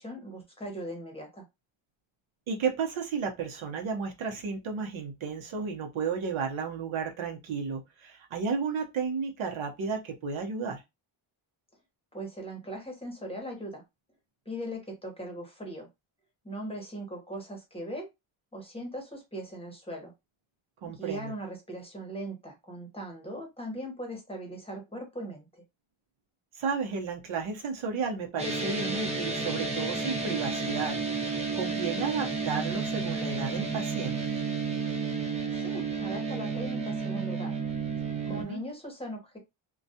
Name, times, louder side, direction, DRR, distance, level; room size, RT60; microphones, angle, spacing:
voice 1, 0.0-1.4 12.1-13.8 14.5-15.9 16.4-18.1 18.5-20.1 20.8-25.5 35.5-37.5 38.3-39.4, right 1 dB, 10° left, 0.9 m, -39 dB
voice 2, 2.5-10.8 20.8-21.3 26.6-34.3 38.3-38.6, right 5 dB, 75° right, 0.8 m, -33 dB
sound 1, 28.4-38.4, right 4 dB, 15° right, 0.5 m, -31 dB
2.3 x 2.2 x 2.7 m
wide cardioid pair, 140°, 49 cm